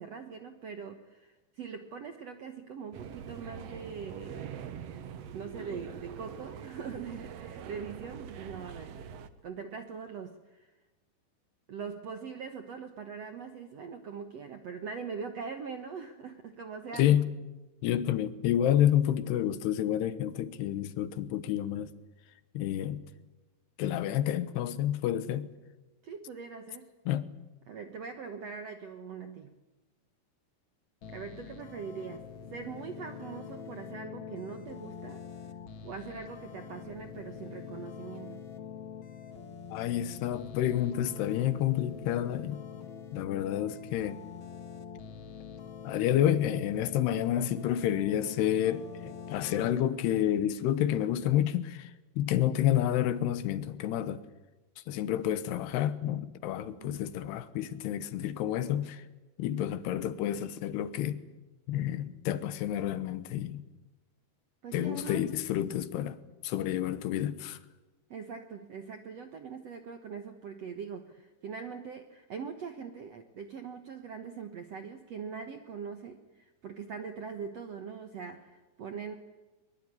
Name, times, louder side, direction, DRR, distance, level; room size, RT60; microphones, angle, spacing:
voice 1, 0.0-4.5 5.3-9.1 9.4-10.7 11.7-17.1 26.0-26.9 27.7-29.5 31.1-32.2 32.5-35.2 35.8-38.4 56.8-57.0 64.6-65.2 68.1-79.2, right 6 dB, 65° right, 1.6 m, -42 dB
sound 1, 2.9-9.3, right 8 dB, 85° right, 1.4 m, -44 dB
voice 2, 17.0-17.3 17.8-21.9 22.5-23.0 23.8-25.5 27.1-27.3 39.7-42.6 43.1-44.2 45.8-51.9 52.2-54.2 54.9-59.0 59.4-61.2 61.7-63.6 64.7-66.2 66.4-67.6, left 11 dB, 80° left, 3.1 m, -29 dB
sound 2, 31.0-49.6, left 7 dB, 50° left, 1.6 m, -45 dB
22.5 x 22.5 x 9.8 m
omnidirectional pair, 4.7 m